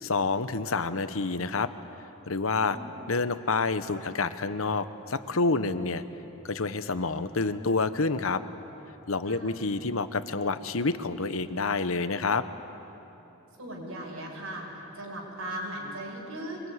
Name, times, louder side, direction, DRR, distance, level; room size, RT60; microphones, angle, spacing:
voice 1, 0.0-1.7 2.3-2.8 3.1-6.0 6.4-8.4 9.1-12.4, left 3 dB, 75° left, 12 dB, 1.0 m, -28 dB
voice 2, 2.6-2.9 9.3-9.6 13.6-14.7 14.9-16.6, right 1 dB, 80° right, -3 dB, 5.9 m, -38 dB
25.5 x 21.0 x 9.6 m, 3.0 s
head